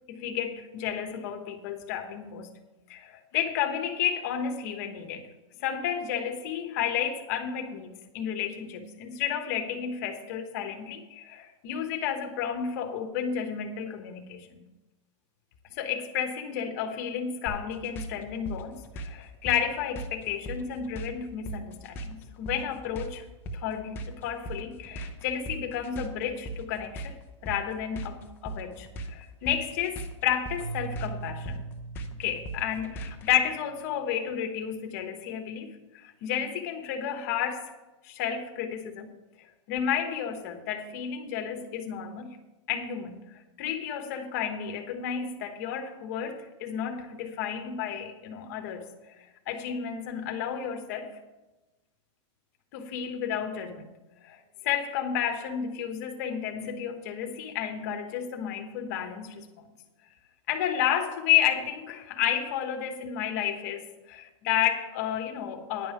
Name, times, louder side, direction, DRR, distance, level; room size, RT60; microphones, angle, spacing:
voice 1, 0.1-2.5 2.9-5.3 5.6-14.6 15.7-23.2 23.5-27.1 27.4-31.7 32.2-37.7 38.0-39.1 39.7-42.4 42.7-43.2 43.6-51.2 52.7-53.9 54.2-59.5 60.5-65.9, left 9 dB, 35° left, 5 dB, 1.1 m, -31 dB
sound 1, 17.5-33.3, right 1 dB, 10° left, 0.5 m, -39 dB
Keyboard (musical), 30.6-33.7, right 4 dB, 65° right, 3.0 m, -40 dB
10.5 x 5.5 x 8.5 m, 1.1 s
supercardioid pair, 175°, 16 cm